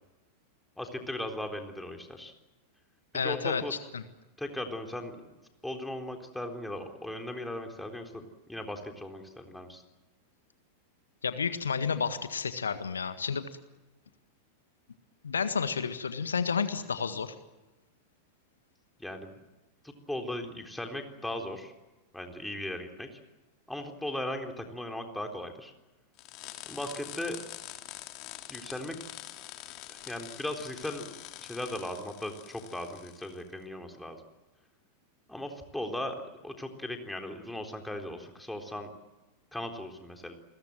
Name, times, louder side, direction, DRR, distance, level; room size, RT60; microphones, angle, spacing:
voice 1, 0.8-2.3 3.2-3.7 4.4-5.2 5.6-8.2 8.5-9.8 19.0-19.3 19.8-21.7 22.1-23.2 23.7-25.7 26.7-27.4 28.5-29.0 29.9-34.2 35.3-36.2 36.4-38.9 39.5-40.3, left 1 dB, 5° left, 3 dB, 3.9 m, -38 dB
voice 2, 3.1-4.0 11.2-13.4 15.2-17.3, left 6 dB, 70° left, 11 dB, 1.6 m, -31 dB
sound 1, 26.2-33.4, left 15 dB, 40° left, 2.6 m, -45 dB
29.0 x 21.5 x 7.8 m, 1.1 s
figure-of-eight pair, 90°, 0 cm